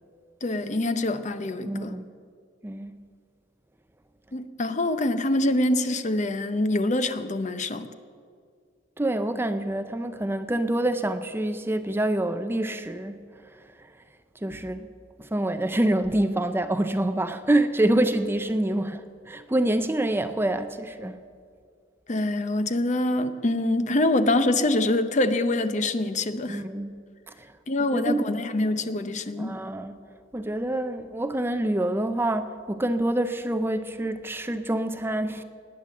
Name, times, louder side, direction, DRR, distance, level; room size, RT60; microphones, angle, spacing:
voice 1, 0.4-1.9 4.3-7.9 22.1-26.6 27.7-29.5, left 2 dB, 40° left, 0.8 m, -25 dB
voice 2, 1.6-2.1 2.6-3.0 9.0-13.2 14.4-14.9 15.2-21.2 26.5-27.0 27.3-27.5 27.9-28.3 29.4-30.0 30.3-35.4, right 1 dB, 10° right, 0.5 m, -26 dB
19.0 x 9.2 x 7.6 m
head